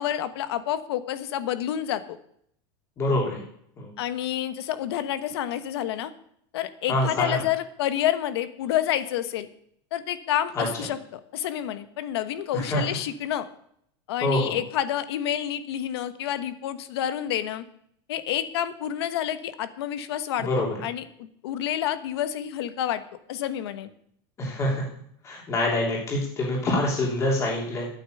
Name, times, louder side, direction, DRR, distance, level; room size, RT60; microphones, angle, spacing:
voice 1, 0.0-2.2 4.0-6.1 6.5-9.5 9.9-13.5 14.1-17.6 18.1-23.0 23.3-23.9, left 11 dB, 90° left, 12 dB, 1.3 m, -29 dB
voice 2, 3.0-3.4 3.8-3.9 6.9-7.4 10.6-10.7 12.5-12.8 14.2-14.6 20.4-20.7 24.4-24.8 25.2-27.9, left 1 dB, 20° left, -2 dB, 3.1 m, -25 dB
11.5 x 9.2 x 6.7 m, 0.68 s
supercardioid pair, 175°, 13 cm